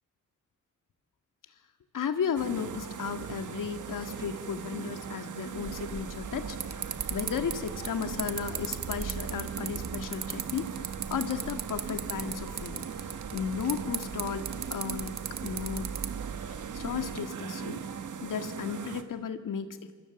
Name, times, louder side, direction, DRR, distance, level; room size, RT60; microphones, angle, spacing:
voice 1, 1.9-6.6 7.1-15.1 15.4-15.9 16.5-17.8 18.2-19.9, left 7 dB, 85° left, 8 dB, 2.1 m, -34 dB
sound 1, 2.3-19.0, right 7 dB, 75° right, 1.9 m, -39 dB
sound 2, 5.6-17.2, right 7 dB, 60° right, 1.5 m, -38 dB
27.5 x 25.5 x 7.2 m, 1.4 s
wide cardioid pair, 110°, 31 cm